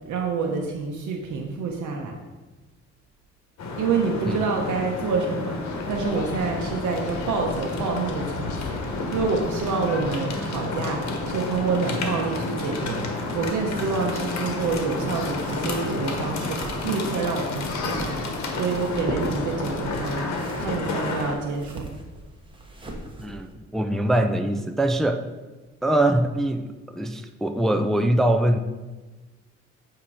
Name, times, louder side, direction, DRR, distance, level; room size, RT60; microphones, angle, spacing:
voice 1, 0.1-2.1 3.8-5.5 5.9-18.3 18.6-20.3 20.6-21.8, right 4 dB, 75° right, 1 dB, 0.8 m, -27 dB
sound 1, 3.6-21.3, left 3 dB, 65° left, 1.2 m, -30 dB
sound 2, 5.6-20.8, left 4 dB, 80° left, 0.8 m, -41 dB
sound 3, 15.3-23.5, right 1 dB, 15° right, 1.1 m, -39 dB
voice 2, 23.2-25.2 25.8-28.6, right 1 dB, ahead, 6 dB, 0.4 m, -23 dB
8.4 x 2.9 x 4.8 m, 1.2 s
cardioid pair, 90°, 30 cm